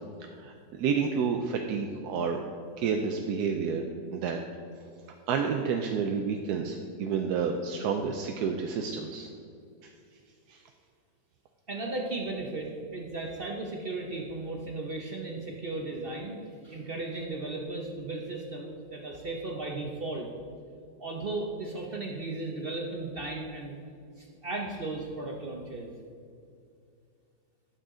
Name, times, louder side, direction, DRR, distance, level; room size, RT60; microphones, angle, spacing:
voice 1, 0.4-2.4 2.8-3.8 4.1-4.4 5.3-9.3, right 6 dB, 70° right, 3 dB, 1.0 m, -29 dB
voice 2, 11.7-16.4 16.6-20.3 21.0-23.8 24.2-25.9, right 2 dB, 50° right, 0 dB, 0.7 m, -35 dB
11.5 x 6.4 x 3.7 m, 2.3 s
omnidirectional pair, 1.9 m